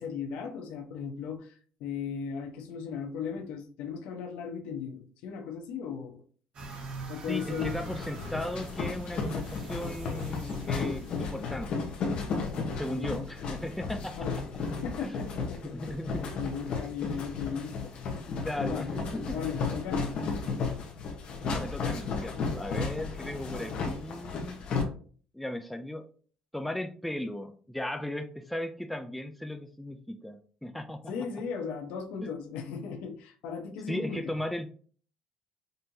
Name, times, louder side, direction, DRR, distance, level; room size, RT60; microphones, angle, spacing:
voice 1, 0.0-6.2 7.1-7.8 12.7-13.3 14.2-14.4 14.7-18.3 18.6-19.0 19.3-20.1 31.1-34.4, left 6 dB, 80° left, 3 dB, 0.9 m, -37 dB
sound 1, 6.5-11.7, right 3 dB, 45° right, 1.3 m, -44 dB
voice 2, 7.3-11.8 12.8-14.3 15.0-15.1 15.6-16.3 18.4-19.4 21.5-24.6 25.3-26.0 26.5-31.1 32.2-32.3 33.9-34.7, left 1 dB, ahead, 6 dB, 0.4 m, -36 dB
sound 2, 7.4-24.8, left 4 dB, 50° left, 1.0 m, -34 dB
5.4 x 2.9 x 2.7 m, 0.43 s
cardioid pair, 140°, 2 cm